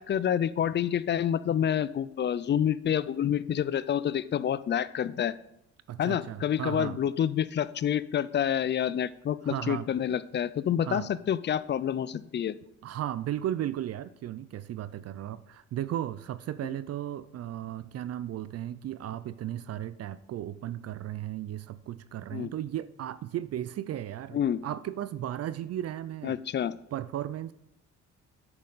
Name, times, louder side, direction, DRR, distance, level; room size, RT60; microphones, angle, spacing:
voice 1, 0.0-5.3 6.0-12.6 22.3-22.5 24.3-24.6 26.2-26.8, left 9 dB, 35° left, 17 dB, 0.4 m, -28 dB
voice 2, 5.9-7.0 9.4-9.9 10.8-11.1 12.8-26.4 26.9-27.5, right 12 dB, 55° right, 16 dB, 0.4 m, -35 dB
8.7 x 6.5 x 4.0 m, 0.78 s
cardioid pair, 90°, 30 cm